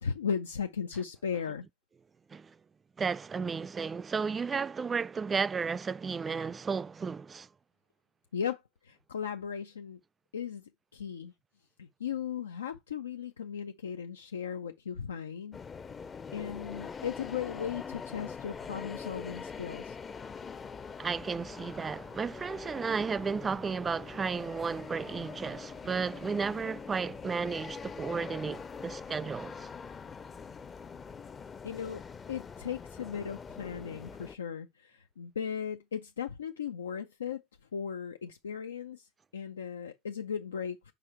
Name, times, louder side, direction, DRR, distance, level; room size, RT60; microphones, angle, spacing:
voice 1, 0.0-1.7 8.3-10.0 10.3-10.6 10.9-11.3 11.8-15.6 16.3-20.0 31.6-32.0 32.3-37.4 37.7-39.1 39.3-40.9, left 7 dB, 85° left, 0.4 m, -37 dB
voice 2, 3.0-7.5 21.0-29.7, right 5 dB, 25° right, 0.3 m, -33 dB
sound 1, 15.5-34.3, left 5 dB, 30° left, 0.6 m, -44 dB
4.9 x 4.8 x 4.2 m
hypercardioid pair, 75°, 0 cm